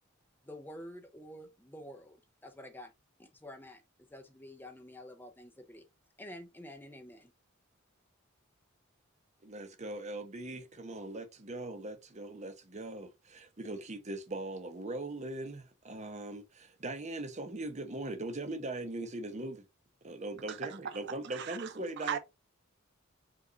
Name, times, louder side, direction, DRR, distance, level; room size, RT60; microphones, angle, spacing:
voice 1, 0.4-2.9 3.2-3.8 4.1-5.9 6.2-7.3, left 1 dB, 10° left, 0.6 m, -49 dB
voice 2, 9.4-19.6 20.0-22.2, right 2 dB, 35° right, 0.8 m, -40 dB
voice 3, 21.3-21.7 22.0-22.2, right 9 dB, 55° right, 0.4 m, -36 dB
5.0 x 2.5 x 3.8 m
head